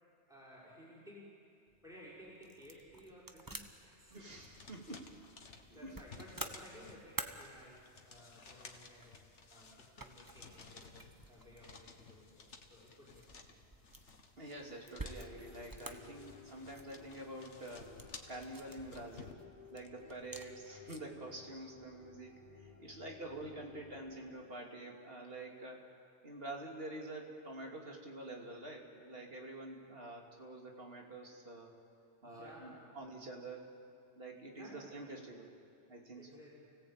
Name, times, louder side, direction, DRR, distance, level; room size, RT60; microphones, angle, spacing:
voice 1, 0.3-1.4 1.8-4.4 5.4-9.2 9.5-13.6 20.0-20.2 22.8-23.0 32.2-32.9 34.5-35.0 36.1-36.7, equal, 5° right, -6 dB, 6.1 m, -57 dB
sound 1, 1.7-21.2, right 2 dB, 20° right, 1.1 m, -52 dB
voice 2, 4.1-5.1 5.7-5.9 14.4-18.0 18.3-19.4 19.7-31.7 32.2-33.6 34.2-35.5 35.9-36.4, right 2 dB, 55° right, 1 dB, 3.0 m, -47 dB
sound 2, 4.3-19.3, left 4 dB, 75° left, 1.9 m, -56 dB
sound 3, 15.0-24.5, left 6 dB, 30° left, 1.1 m, -58 dB
29.5 x 17.5 x 8.8 m, 2.5 s
omnidirectional pair, 1.2 m